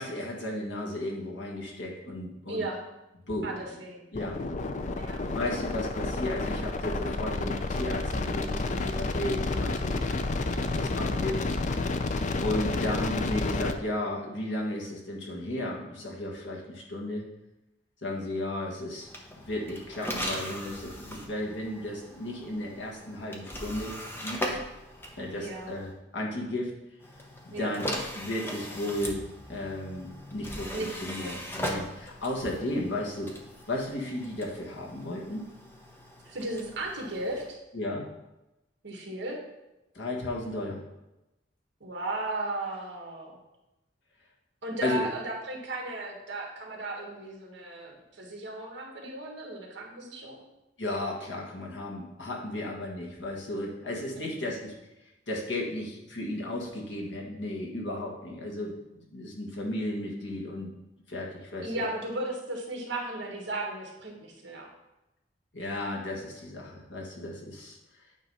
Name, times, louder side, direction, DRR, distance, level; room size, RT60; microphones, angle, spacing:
voice 1, 0.0-2.6 3.3-3.5 4.1-4.4 5.3-11.4 12.4-17.2 18.0-19.1 19.4-24.6 25.2-26.7 27.4-29.2 29.5-33.3 33.7-35.4 37.7-38.1 39.9-40.8 44.8-45.1 50.8-54.7 55.3-58.8 59.1-60.7 61.1-61.7 65.5-67.8, left 1 dB, 65° left, -2 dB, 1.6 m, -34 dB
voice 2, 2.5-2.8 3.4-4.1 4.9-5.2 25.4-25.7 27.5-27.8 30.7-30.9 31.2-31.4 36.2-37.6 38.8-39.4 41.8-43.4 44.6-50.4 54.2-54.6 61.6-64.7, right 2 dB, 65° right, 0 dB, 1.6 m, -36 dB
sound 1, 4.1-13.7, left 3 dB, 40° left, 0.4 m, -30 dB
sound 2, 19.0-25.9 27.0-37.5, equal, 10° left, 0.8 m, -39 dB
9.0 x 3.1 x 5.4 m, 0.96 s
head